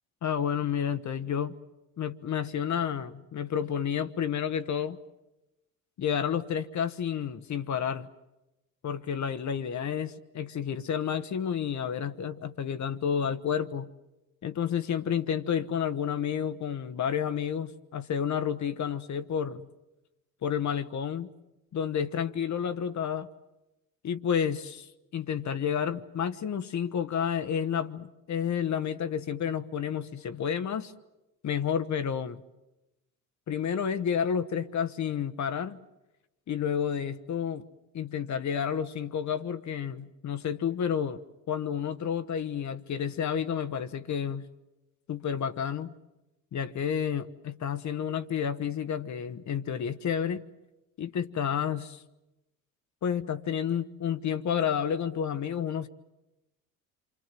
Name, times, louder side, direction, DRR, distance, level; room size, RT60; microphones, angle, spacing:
voice 1, 0.2-1.5 2.0-5.0 6.0-8.1 8.8-13.9 14.4-19.7 20.4-21.3 21.7-23.3 24.0-30.9 31.4-32.4 33.5-35.8 36.5-37.6 37.9-41.2 41.5-44.5 45.1-45.9 46.5-50.4 51.0-52.0 53.0-55.9, left 8 dB, 40° left, 1.2 m, -30 dB
27.5 x 25.0 x 7.6 m
hypercardioid pair, 60°, 42 cm